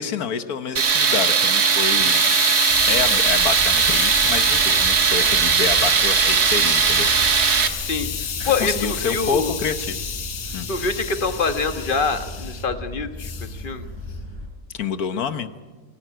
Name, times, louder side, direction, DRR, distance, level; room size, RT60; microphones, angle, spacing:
voice 1, 0.0-2.2 2.8-7.3 8.6-10.0 10.5-10.7 14.7-15.5, left 7 dB, 70° left, 10 dB, 1.5 m, -27 dB
Tools, 0.8-7.7, right 6 dB, 85° right, 2.1 m, -18 dB
Hiss, 0.9-12.6 13.2-13.6, left 7 dB, 90° left, 1.8 m, -31 dB
sound 1, 2.7-14.5, left 1 dB, 15° right, 4.4 m, -36 dB
voice 2, 8.4-9.5 10.7-13.9, left 4 dB, 35° left, 8 dB, 1.5 m, -25 dB
24.5 x 15.5 x 9.0 m, 1.3 s
omnidirectional pair, 1.6 m